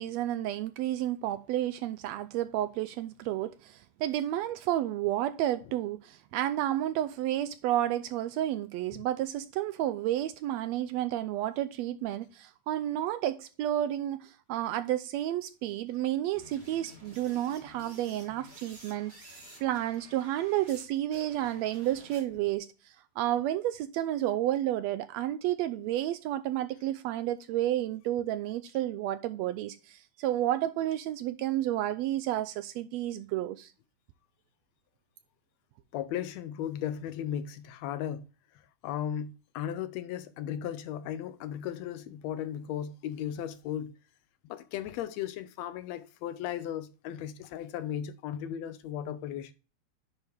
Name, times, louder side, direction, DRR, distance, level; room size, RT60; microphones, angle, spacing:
voice 1, 0.0-33.7, right 13 dB, 80° right, 1.6 m, -31 dB
sound 1, 16.3-20.8 21.1-22.5, right 1 dB, 20° right, 2.4 m, -52 dB
voice 2, 35.9-38.3 38.8-43.9 44.5-49.5, left 10 dB, 75° left, 1.7 m, -36 dB
9.8 x 4.5 x 3.4 m
omnidirectional pair, 3.3 m